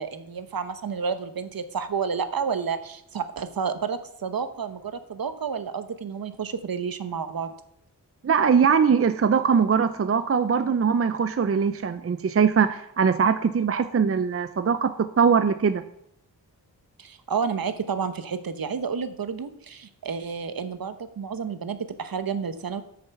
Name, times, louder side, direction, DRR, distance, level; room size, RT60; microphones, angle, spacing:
voice 1, 0.0-7.5 17.0-22.8, right 6 dB, 60° right, 11 dB, 1.0 m, -30 dB
voice 2, 8.2-15.8, right 6 dB, 35° right, 10 dB, 0.6 m, -21 dB
8.9 x 6.7 x 7.0 m, 0.75 s
cardioid pair, 65°, 39 cm